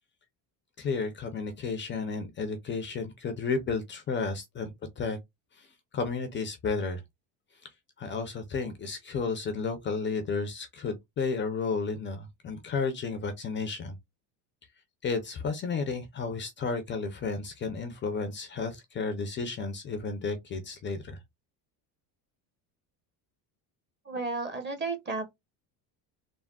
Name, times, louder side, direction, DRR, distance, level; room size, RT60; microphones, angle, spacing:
voice 1, 0.8-5.2 5.6-5.7 5.9-7.0 8.0-14.0 15.0-21.2, left 4 dB, 30° left, 0.4 m, -32 dB
voice 2, 24.0-25.3, right 3 dB, 25° right, 0.8 m, -33 dB
3.5 x 2.0 x 2.2 m
cardioid pair, 140°, 42 cm